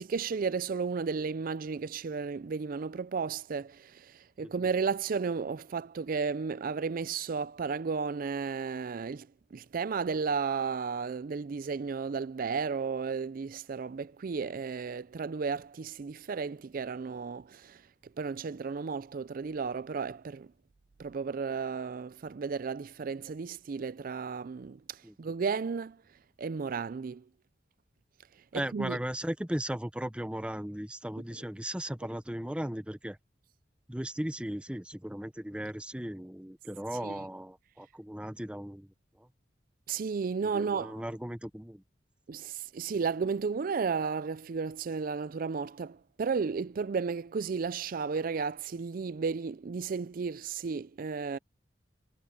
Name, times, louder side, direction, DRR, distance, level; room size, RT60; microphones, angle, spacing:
voice 1, 0.0-17.8 18.2-20.5 21.0-26.0 26.4-27.3 28.5-29.0 37.0-37.2 39.9-41.0 42.3-51.4, right 5 dB, 50° right, 0.4 m, -33 dB
voice 2, 28.5-33.2 33.9-38.9 39.2-39.3 40.5-41.8, right 1 dB, 5° right, 0.8 m, -37 dB
head